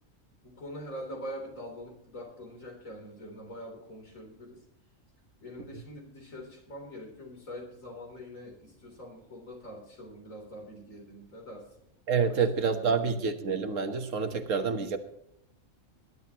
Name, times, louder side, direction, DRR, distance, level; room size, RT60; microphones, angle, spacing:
voice 1, 0.4-4.6 5.4-11.7 12.2-13.1 14.3-14.5, equal, 85° left, 1 dB, 3.9 m, -44 dB
voice 2, 12.1-15.0, right 5 dB, 75° right, 7 dB, 1.7 m, -28 dB
20.0 x 11.0 x 3.0 m, 0.76 s
omnidirectional pair, 1.3 m